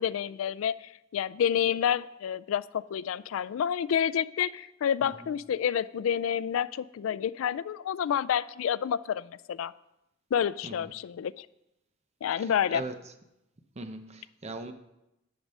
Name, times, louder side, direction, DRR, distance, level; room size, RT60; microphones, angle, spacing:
voice 1, 0.0-9.7 10.3-11.5 12.2-12.8, left 8 dB, 80° left, 17 dB, 0.3 m, -29 dB
voice 2, 12.4-13.0 13.8-14.7, right 2 dB, 35° right, 8 dB, 0.8 m, -40 dB
10.5 x 6.0 x 5.4 m, 0.89 s
head